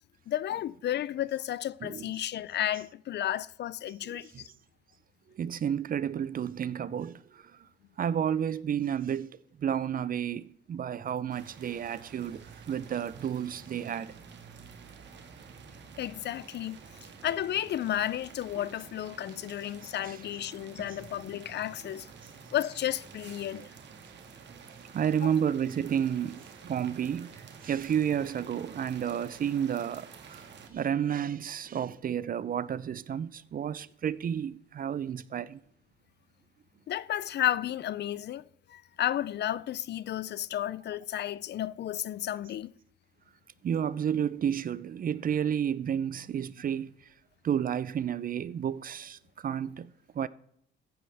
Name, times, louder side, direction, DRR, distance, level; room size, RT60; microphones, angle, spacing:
voice 1, 0.3-4.5 16.0-16.8 17.2-22.1 22.5-23.7 25.2-25.3 36.9-42.7, left 12 dB, 60° left, 0.5 m, -32 dB
voice 2, 4.0-4.4 5.4-7.4 8.0-14.1 20.1-20.2 23.5-23.7 24.9-30.4 30.7-35.6 43.6-46.9 47.4-50.3, right 8 dB, 45° right, 0.6 m, -31 dB
sound 1, 11.3-30.7, right 5 dB, 65° right, 1.8 m, -50 dB
15.0 x 9.3 x 3.5 m
cardioid pair, 90°, 20 cm